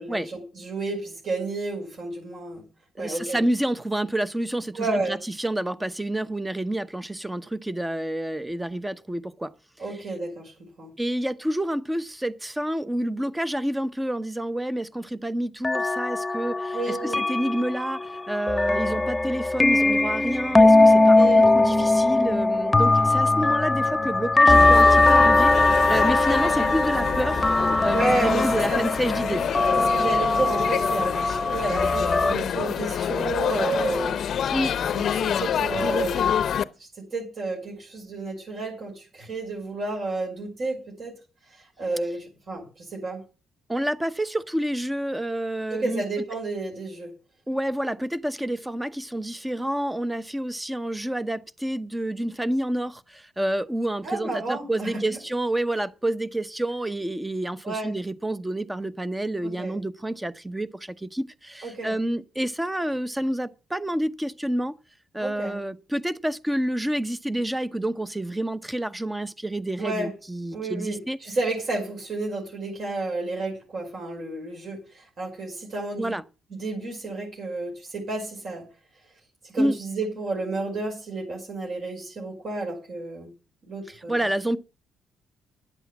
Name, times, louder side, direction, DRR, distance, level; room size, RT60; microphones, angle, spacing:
voice 1, 0.0-2.6 3.0-3.4 4.7-5.2 9.8-10.5 10.8-10.9 16.7-17.2 21.1-21.5 27.9-28.8 29.8-34.4 34.9-36.4 36.8-41.1 41.5-43.2 45.7-47.1 54.0-55.2 57.6-57.9 59.4-59.8 61.6-61.9 65.2-65.6 69.8-70.1 70.5-76.1 76.6-78.7 79.4-83.3 83.7-84.2, right 2 dB, 55° right, 5.5 m, -31 dB
voice 2, 3.0-9.5 11.0-27.4 27.8-29.4 34.5-34.7 43.7-46.0 47.5-64.8 65.1-71.2 75.9-76.2 79.6-79.7 84.1-84.6, right 1 dB, 10° right, 0.8 m, -28 dB
sound 1, 15.6-32.4, left 2 dB, 15° left, 1.0 m, -20 dB
Laughter / Chatter / Crowd, 24.5-36.6, left 8 dB, 65° left, 0.7 m, -27 dB
10.5 x 8.2 x 7.2 m
cardioid pair, 90°, 0 cm